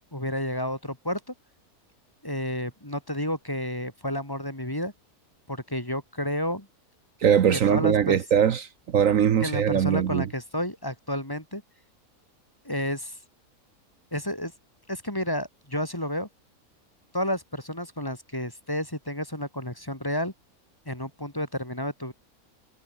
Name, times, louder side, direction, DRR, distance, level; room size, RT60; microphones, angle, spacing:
voice 1, 0.1-1.3 2.2-4.9 5.5-6.7 7.5-8.2 9.4-11.6 12.6-13.2 14.1-14.5 14.9-16.3 17.1-20.3 20.8-22.1, left 1 dB, 15° left, 3.1 m, -31 dB
voice 2, 7.2-10.3, right 8 dB, 65° right, 1.3 m, -21 dB
omnidirectional pair, 1.5 m